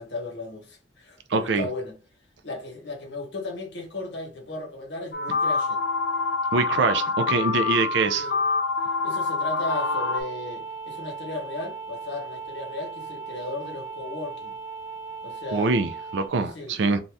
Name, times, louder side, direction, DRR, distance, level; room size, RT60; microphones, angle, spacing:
voice 1, 0.0-2.0 2.4-5.8 8.2-8.4 9.0-14.6 15.2-16.0 16.4-17.0, left 2 dB, 70° left, 1.0 m, -36 dB
voice 2, 1.3-1.7 6.5-8.3 15.5-17.0, right 4 dB, 70° right, 0.4 m, -24 dB
sound 1, 5.1-10.2, left 4 dB, 55° left, 0.4 m, -26 dB
sound 2, 9.6-16.3, right 4 dB, 15° left, 1.0 m, -37 dB
2.7 x 2.3 x 3.3 m
head